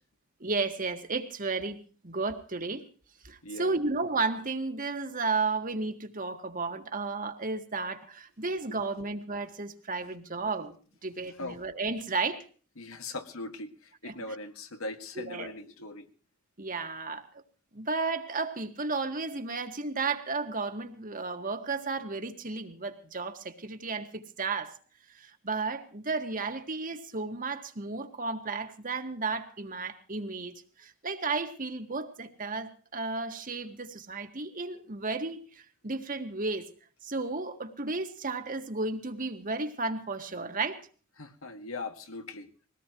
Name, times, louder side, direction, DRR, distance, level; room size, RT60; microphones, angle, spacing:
voice 1, 0.4-1.8 2.0-2.8 3.2-10.7 11.0-12.5 14.0-14.1 15.2-15.5 16.6-17.3 17.7-24.8 25.1-30.5 30.8-36.7 37.0-40.8, right 3 dB, 40° right, 7 dB, 1.7 m, -33 dB
voice 2, 3.4-3.8 8.7-8.8 11.4-11.6 12.8-16.1 41.2-42.5, left 2 dB, 80° left, 7 dB, 1.9 m, -40 dB
22.0 x 18.0 x 3.1 m, 0.41 s
head